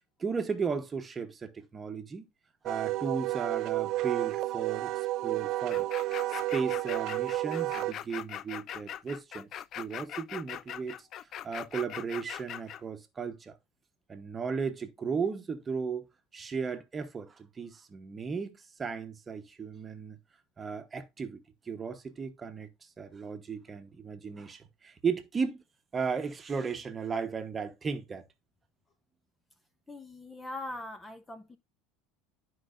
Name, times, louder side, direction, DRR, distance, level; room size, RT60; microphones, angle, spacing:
voice 1, 0.2-2.3 2.6-5.9 6.3-11.1 11.4-13.6 14.1-16.1 16.3-20.2 20.6-25.6 25.9-28.3, right 5 dB, 25° right, 1.1 m, -35 dB
Wind instrument woodwind instrument, 2.7-7.9, right 17 dB, 55° right, 0.3 m, -31 dB
sound 1, 5.7-12.8, left 11 dB, 45° left, 0.3 m, -41 dB
voice 2, 29.9-31.6, left 2 dB, 15° left, 0.7 m, -41 dB
12.5 x 4.8 x 2.6 m
supercardioid pair, 110°, 0 cm